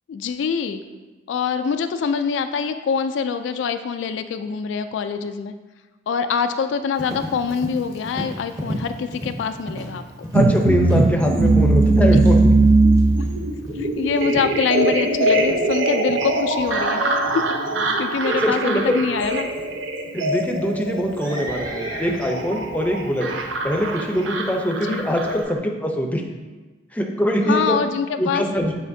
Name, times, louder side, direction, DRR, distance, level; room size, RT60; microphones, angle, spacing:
voice 1, 0.1-0.8 1.3-5.5 6.1-10.0 12.1-12.2 13.7-17.2 18.0-19.5 24.8-25.1 27.5-28.4, left 6 dB, 70° left, 9 dB, 0.3 m, -24 dB
Livestock farm animals working animals, 6.9-25.4, equal, 20° right, 0.9 m, -37 dB
voice 2, 10.3-12.4 18.4-19.0 20.1-23.3 23.6-26.2 26.9-27.8 28.2-28.7, equal, 10° left, 2 dB, 0.6 m, -23 dB
sound 1, 10.3-25.5, right 2 dB, 85° right, 0.6 m, -20 dB
8.3 x 4.2 x 2.6 m, 1.2 s
head